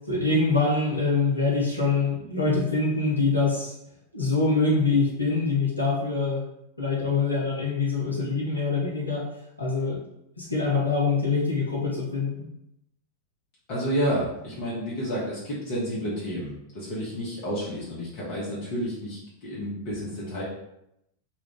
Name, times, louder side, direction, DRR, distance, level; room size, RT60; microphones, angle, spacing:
voice 1, 0.1-3.7 4.1-6.4 6.8-9.3 9.6-10.0 10.4-12.5, left 3 dB, 85° left, -5 dB, 0.6 m, -24 dB
voice 2, 13.7-20.4, equal, 45° left, -7 dB, 0.8 m, -30 dB
2.3 x 2.3 x 3.6 m, 0.83 s
figure-of-eight pair, 90°, 0 cm